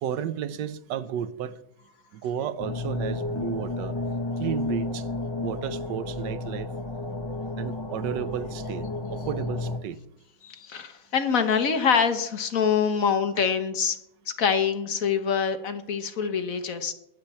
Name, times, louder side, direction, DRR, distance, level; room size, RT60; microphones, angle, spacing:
voice 1, 0.0-1.6 2.1-4.0 4.4-5.1 5.4-6.7 7.6-8.9 9.1-10.0, right 9 dB, 75° right, 1.3 m, -32 dB
sound 1, 2.6-9.8, left 2 dB, 20° left, 0.7 m, -32 dB
voice 2, 10.4-14.0 14.4-16.9, left 6 dB, 50° left, 1.3 m, -25 dB
22.0 x 7.6 x 4.3 m
omnidirectional pair, 2.0 m